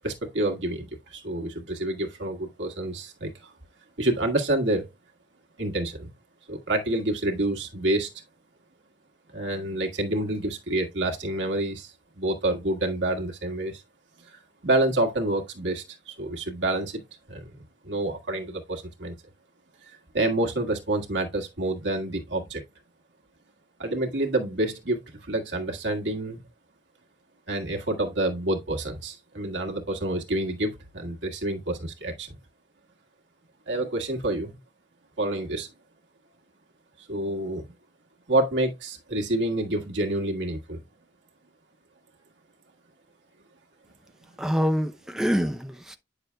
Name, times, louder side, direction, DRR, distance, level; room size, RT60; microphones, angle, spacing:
voice 1, 0.0-3.5 4.0-4.9 5.6-6.1 6.5-8.1 9.3-13.8 14.6-17.0 17.3-17.5 17.8-19.1 20.1-22.6 23.8-26.4 27.5-32.3 33.7-34.6 35.2-35.7 37.1-37.7 38.3-40.8, right 1 dB, 85° right, 1.6 m, -28 dB
voice 2, 44.4-46.0, equal, 5° right, 0.5 m, -26 dB
9.3 x 6.6 x 2.2 m
head